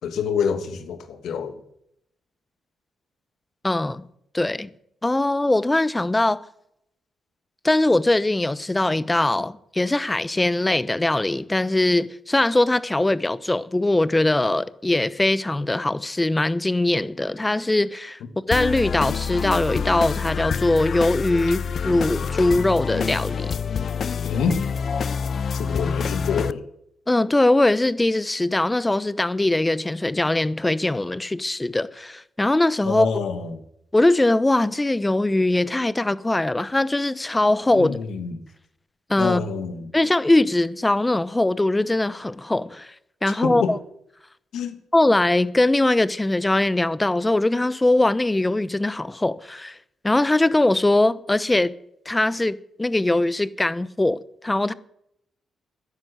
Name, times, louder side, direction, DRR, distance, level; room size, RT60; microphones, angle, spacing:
voice 1, 0.0-1.6 24.2-24.6 25.5-26.6 32.8-33.6 37.7-38.4 39.2-39.9 43.4-43.7 44.5-44.7, left 6 dB, 80° left, 2.4 m, -26 dB
voice 2, 3.6-4.0 4.3-4.7 5.0-6.4 7.6-18.2 18.5-23.5 27.1-33.1 33.9-37.9 39.1-39.4 39.9-42.9 43.2-43.8 44.9-49.8 50.0-51.7 52.1-54.7, left 2 dB, 15° left, 0.9 m, -21 dB
sound 1, 18.5-26.5, left 6 dB, 55° left, 0.5 m, -27 dB
13.5 x 11.0 x 8.0 m
cardioid pair, 75°, 0 cm